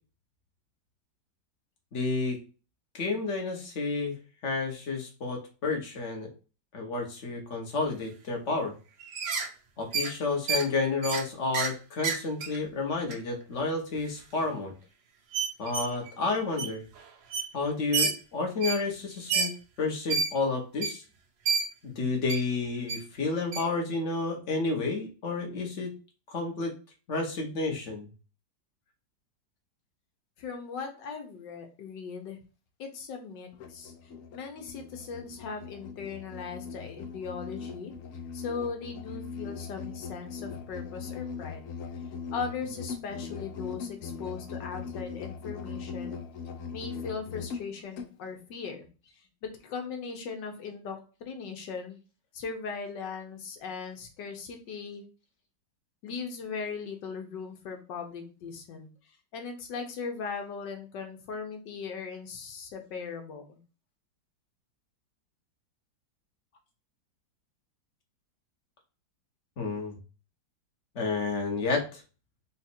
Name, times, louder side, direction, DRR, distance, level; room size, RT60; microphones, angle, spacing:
voice 1, 1.9-2.4 2.9-4.1 4.4-6.3 6.7-8.7 9.8-14.7 15.6-16.8 17.5-21.0 21.8-25.9 26.3-26.7 27.1-28.1 69.6-69.9 70.9-72.0, left 3 dB, 45° left, 2 dB, 1.1 m, -30 dB
sound 1, 9.0-9.5 9.9-10.1 10.5-10.7 11.0-11.2 11.5-11.7 12.0-12.6 13.1-13.2 13.9-14.0 14.4-14.5 15.3-16.1 16.6-16.7 17.0-17.1 17.3-17.5 17.9-18.1 18.6-18.8 19.3-19.5 20.1-20.3 20.8-20.9 21.5-21.7 22.3-22.4 22.9-23.0 23.5-23.7, right 5 dB, 90° right, 1.6 m, -29 dB
voice 2, 30.4-32.4 32.8-37.9 38.3-41.6 42.3-46.2 46.7-48.8 49.2-52.0 52.3-55.0 56.0-58.9 59.3-63.6, left 5 dB, 70° left, 4 dB, 1.5 m, -39 dB
Musical instrument, 33.5-48.1, left 6 dB, 90° left, 0.7 m, -40 dB
4.0 x 2.4 x 4.2 m, 0.34 s
omnidirectional pair, 2.0 m